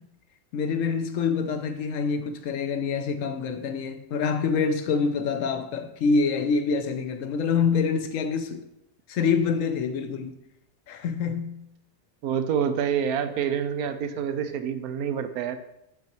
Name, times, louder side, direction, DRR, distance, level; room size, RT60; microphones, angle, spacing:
voice 1, 0.5-8.6 9.1-10.4 10.9-11.6, left 5 dB, 70° left, 0.9 m, -26 dB
voice 2, 12.2-15.6, right 8 dB, 85° right, 1.1 m, -27 dB
6.9 x 5.8 x 3.0 m
omnidirectional pair, 1.5 m